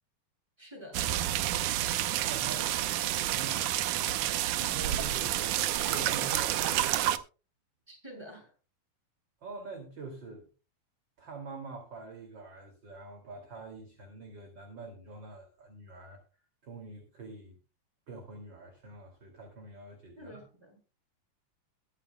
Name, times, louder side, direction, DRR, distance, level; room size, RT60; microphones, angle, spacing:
voice 1, 0.6-1.0 7.9-8.5 20.2-20.8, equal, 5° right, -1 dB, 7.1 m, -48 dB
sound 1, 0.9-7.2, right 13 dB, 75° right, 2.1 m, -29 dB
voice 2, 2.2-2.8 3.1-3.7 4.2-5.6 5.9-7.0 9.4-10.5 11.2-16.2 16.6-17.6 18.1-20.4, right 4 dB, 35° right, 3 dB, 2.8 m, -45 dB
22.0 x 9.0 x 2.2 m, 0.34 s
omnidirectional pair, 3.9 m